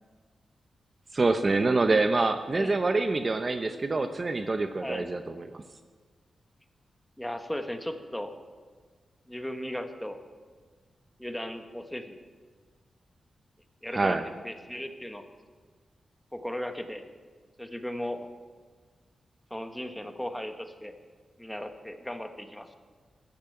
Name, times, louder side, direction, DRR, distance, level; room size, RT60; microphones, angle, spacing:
voice 1, 1.1-5.6 13.9-14.2, right 3 dB, 35° right, 9 dB, 0.7 m, -26 dB
voice 2, 7.2-8.3 9.3-10.2 11.2-12.2 13.8-14.2 14.4-15.2 16.3-17.0 17.6-18.3 19.5-20.9 21.4-22.8, left 1 dB, 5° left, 7 dB, 1.2 m, -36 dB
13.5 x 10.5 x 8.6 m, 1.5 s
wide cardioid pair, 110°, 0 cm